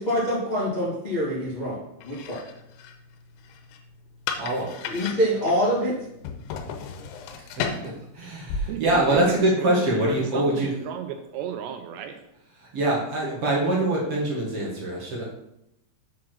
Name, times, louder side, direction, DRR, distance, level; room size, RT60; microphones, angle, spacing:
voice 1, 0.0-1.8 2.0-2.4 4.8-5.9, equal, 70° left, -7 dB, 0.4 m, -25 dB
sound 1, 2.0-9.4, left 5 dB, 90° left, 3.2 m, -36 dB
voice 2, 4.4-4.8 7.3-10.7 12.5-15.3, right 1 dB, 65° right, -4 dB, 1.4 m, -24 dB
voice 3, 8.7-9.0 9.6-12.2, right 9 dB, 85° right, 6 dB, 2.6 m, -34 dB
7.3 x 4.8 x 6.0 m, 0.82 s
omnidirectional pair, 5.4 m